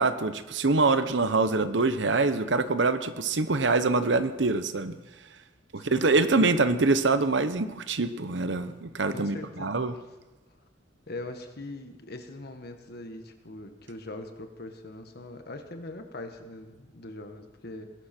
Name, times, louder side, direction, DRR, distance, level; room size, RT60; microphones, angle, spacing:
voice 1, 0.0-5.0 5.7-9.9, right 3 dB, 75° right, 12 dB, 0.9 m, -25 dB
voice 2, 5.8-6.1 9.1-9.8 11.1-17.9, left 2 dB, 60° left, 6 dB, 1.5 m, -41 dB
20.5 x 11.5 x 4.4 m, 1.1 s
head